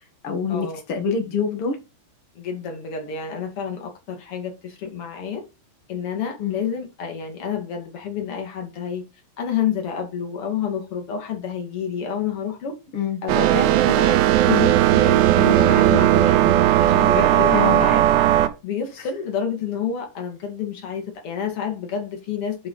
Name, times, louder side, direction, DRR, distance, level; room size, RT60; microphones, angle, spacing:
voice 1, 0.0-1.8 6.4-6.6 12.9-13.2 17.5-17.8 19.0-19.1, left 6 dB, 80° left, 1.2 m, -26 dB
voice 2, 2.4-5.4 5.9-9.0 9.4-12.7 13.2-14.2 14.5-18.1 18.6-22.6, left 7 dB, 40° left, 2.4 m, -29 dB
sound 1, 13.3-18.5, right 13 dB, 75° right, 2.8 m, -17 dB
9.2 x 5.0 x 4.1 m
omnidirectional pair, 5.2 m